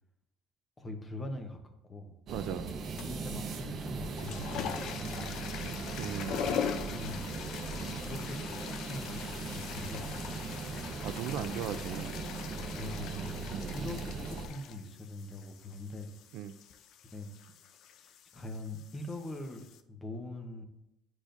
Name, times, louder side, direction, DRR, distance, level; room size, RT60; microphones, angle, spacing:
voice 1, 0.8-2.1 3.0-5.7 6.8-7.4 8.0-10.5 12.7-13.3 13.7-16.1 17.1-17.4 18.0-19.6 19.9-20.7, left 1 dB, 20° left, 5 dB, 0.9 m, -42 dB
sound 1, 2.3-14.5, right 4 dB, 45° right, 0.9 m, -39 dB
voice 2, 2.3-2.7 6.0-7.0 11.0-12.2 13.5-13.8 16.3-16.5, right 10 dB, 65° right, 11 dB, 0.4 m, -38 dB
sound 2, 3.0-3.3 4.0-19.8, left 8 dB, 55° left, 0.5 m, -42 dB
10.0 x 4.9 x 2.6 m, 0.87 s
cardioid pair, 140°, 0 cm